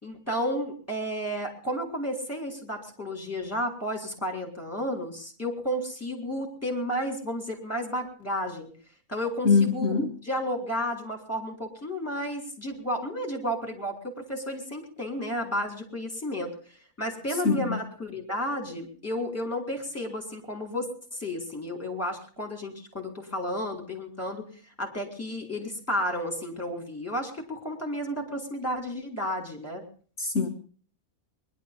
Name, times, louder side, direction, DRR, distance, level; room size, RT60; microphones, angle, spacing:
voice 1, 0.0-8.7 9.1-10.0 10.2-16.5 17.0-24.5 24.8-29.8, equal, 10° left, 4.1 m, -32 dB
voice 2, 9.5-10.1 17.5-17.8 30.2-30.5, left 5 dB, 55° left, 1.7 m, -23 dB
21.5 x 11.5 x 5.4 m
omnidirectional pair, 1.5 m